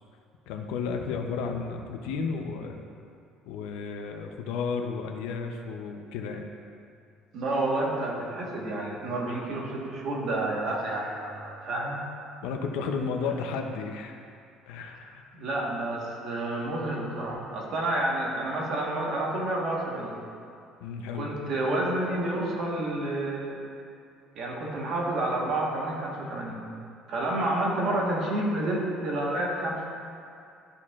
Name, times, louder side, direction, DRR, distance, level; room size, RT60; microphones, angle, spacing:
voice 1, 0.5-2.8 3.5-6.5 12.4-14.2 14.7-15.3 20.8-21.3, left 5 dB, 90° left, 4 dB, 0.6 m, -33 dB
voice 2, 7.3-12.0 15.3-20.2 21.1-23.6 24.3-26.6 27.1-29.8, right 1 dB, 50° right, -3 dB, 1.3 m, -29 dB
12.0 x 4.5 x 2.4 m, 2.4 s
cardioid pair, 165°, 0 cm